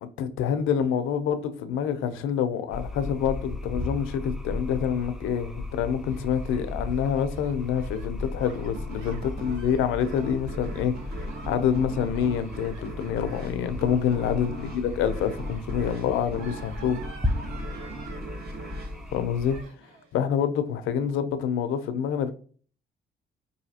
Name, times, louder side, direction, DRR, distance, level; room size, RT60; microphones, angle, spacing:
voice 1, 0.0-10.9 11.5-17.0 19.1-19.6 20.1-22.3, left 8 dB, 90° left, 0.5 m, -27 dB
sound 1, 2.7-19.6, left 2 dB, ahead, 0.5 m, -35 dB
Gasp, 5.8-18.2 18.6-19.2 19.4-20.1, right 4 dB, 85° right, 1.0 m, -51 dB
sound 2, 8.7-20.0, right 3 dB, 55° right, 1.1 m, -42 dB
4.8 x 2.7 x 2.8 m
cardioid pair, 90°, 20 cm